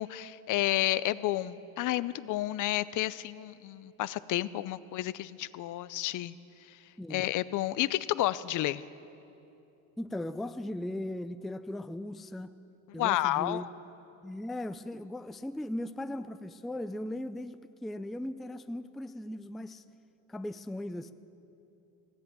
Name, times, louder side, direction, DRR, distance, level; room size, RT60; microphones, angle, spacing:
voice 1, 0.0-6.3 6.7-6.8 7.1-8.8 12.9-13.7, left 15 dB, 55° left, 17 dB, 0.5 m, -31 dB
voice 2, 10.0-12.5 12.9-13.7 14.2-19.8 20.3-21.1, left 1 dB, ahead, 11 dB, 0.3 m, -38 dB
16.5 x 7.9 x 8.4 m, 2.8 s
supercardioid pair, 75°, 39 cm